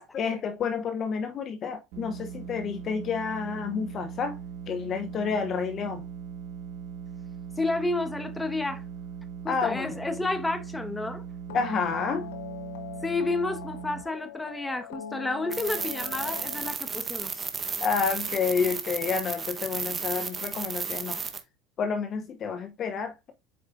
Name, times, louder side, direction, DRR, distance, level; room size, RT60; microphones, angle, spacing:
voice 1, 0.0-4.4 4.7-6.0 9.5-9.9 11.5-12.3 17.8-21.2 21.8-23.3, left 6 dB, 40° left, 0.8 m, -29 dB
sound 1, 1.9-14.0, right 7 dB, 70° right, 1.4 m, -40 dB
voice 2, 7.6-8.8 9.4-11.2 13.0-17.5, left 2 dB, 10° left, 1.2 m, -30 dB
sound 2, 11.5-16.7, left 8 dB, 85° left, 0.9 m, -41 dB
sound 3, 15.5-21.4, right 5 dB, 25° right, 1.2 m, -33 dB
7.8 x 4.8 x 2.6 m
supercardioid pair, 100°, 0 cm